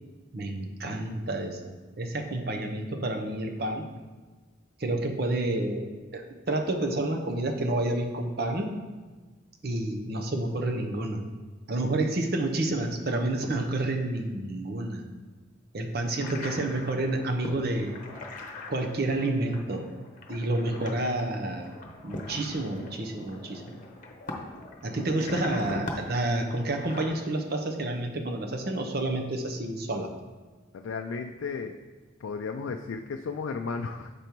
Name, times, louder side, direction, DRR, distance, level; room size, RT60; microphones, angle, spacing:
voice 1, 0.3-3.9 4.8-5.9 6.1-8.8 9.6-11.3 11.7-15.0 15.7-18.0 18.7-19.9 20.3-21.7 22.0-23.8 24.8-30.1, right 2 dB, 50° right, 4 dB, 0.7 m, -29 dB
sound 1, 16.2-27.1, left 2 dB, 40° left, 0.9 m, -41 dB
voice 2, 30.7-31.8 32.2-34.1, left 4 dB, 80° left, 4 dB, 0.4 m, -34 dB
6.8 x 5.2 x 4.5 m, 1.3 s
head